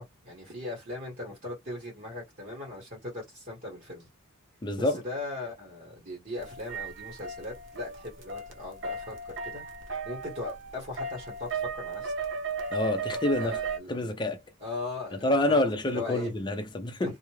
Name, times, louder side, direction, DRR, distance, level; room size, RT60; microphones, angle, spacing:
voice 1, 0.0-4.1 4.8-12.1 13.4-13.9 14.6-15.6 15.9-16.3 17.0-17.2, left 2 dB, 40° right, 1.2 m, -39 dB
voice 2, 4.6-5.0 12.7-13.6 13.9-14.4 15.1-17.1, left 1 dB, 20° left, 0.6 m, -27 dB
sound 1, 6.4-13.8, right 4 dB, 65° right, 0.7 m, -36 dB
2.4 x 2.1 x 3.1 m
head